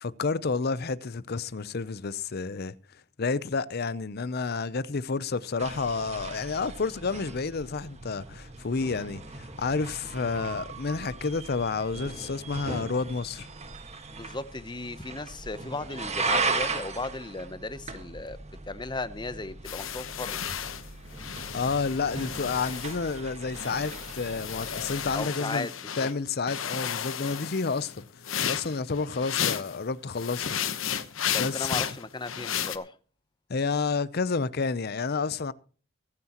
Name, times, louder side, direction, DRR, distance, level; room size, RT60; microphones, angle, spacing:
voice 1, 0.0-2.7 3.2-13.5 21.5-25.7 26.0-28.0 28.4-30.6 31.3-31.8 33.5-35.5, left 4 dB, 50° left, 0.6 m, -30 dB
sound 1, 5.6-25.3, right 3 dB, 35° right, 1.6 m, -37 dB
voice 2, 14.1-18.4 18.7-20.4 25.1-26.1 31.3-32.9, left 3 dB, 20° left, 0.8 m, -36 dB
sound 2, 19.6-23.2 23.5-26.1 26.5-29.8 30.1-32.8, left 9 dB, 75° left, 1.1 m, -33 dB
23.0 x 9.5 x 3.0 m
head